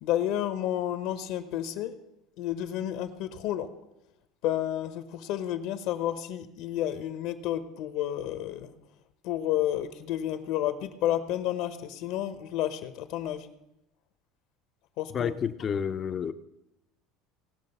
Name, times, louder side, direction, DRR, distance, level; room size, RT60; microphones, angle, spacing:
voice 1, 0.0-1.9 2.4-3.7 4.4-8.7 9.2-13.5 15.0-15.3, left 12 dB, 60° left, 10 dB, 0.9 m, -31 dB
voice 2, 15.1-16.3, left 7 dB, 25° left, 12 dB, 0.5 m, -30 dB
18.5 x 6.3 x 5.4 m, 0.87 s
cardioid pair, 160°, 0 cm